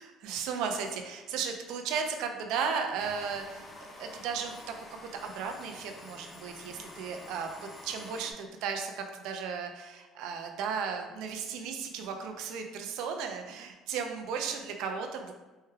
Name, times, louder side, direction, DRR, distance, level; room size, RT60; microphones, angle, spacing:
voice 1, 0.0-4.8 5.2-15.3, right 6 dB, 65° right, 4 dB, 0.5 m, -35 dB
sound 1, 3.0-8.3, left 1 dB, 15° left, 0.4 m, -48 dB
4.4 x 2.2 x 3.2 m, 1.2 s
cardioid pair, 170°, 0 cm